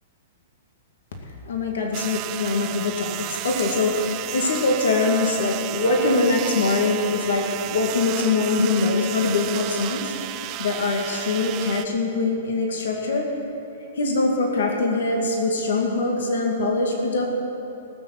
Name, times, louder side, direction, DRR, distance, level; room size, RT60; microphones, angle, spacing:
voice 1, 1.5-13.3 14.0-17.3, left 3 dB, 80° left, 1 dB, 2.1 m, -23 dB
sound 1, 1.9-11.9, right 14 dB, 35° right, 0.5 m, -33 dB
18.5 x 6.7 x 7.7 m, 2.8 s
hypercardioid pair, 140°, 0 cm